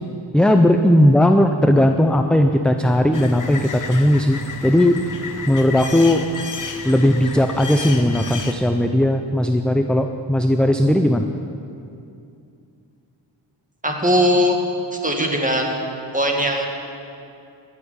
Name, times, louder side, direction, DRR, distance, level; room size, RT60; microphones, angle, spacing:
voice 1, 0.3-5.0 5.5-6.3 6.9-11.3, left 1 dB, ahead, 6 dB, 0.5 m, -17 dB
sound 1, 3.1-8.5, left 5 dB, 40° left, 1.0 m, -32 dB
voice 2, 13.8-14.6 14.9-15.8 16.1-16.7, equal, 15° right, 1 dB, 1.9 m, -19 dB
15.5 x 7.2 x 9.8 m, 2.6 s
wide cardioid pair, 110°, 46 cm